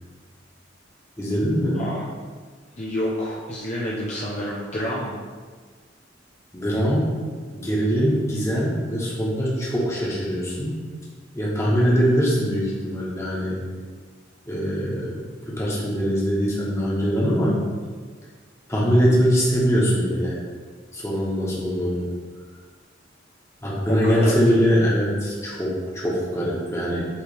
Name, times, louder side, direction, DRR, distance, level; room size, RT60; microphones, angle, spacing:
voice 1, 1.2-1.8 6.5-7.1 7.5-10.8 11.3-13.6 14.5-15.2 15.5-17.6 18.7-20.4 20.9-22.1 23.6-27.1, equal, 15° left, -6 dB, 1.3 m, -22 dB
voice 2, 2.8-5.2 23.9-24.6, equal, 35° left, -5 dB, 0.7 m, -28 dB
8.3 x 3.4 x 3.4 m, 1.5 s
head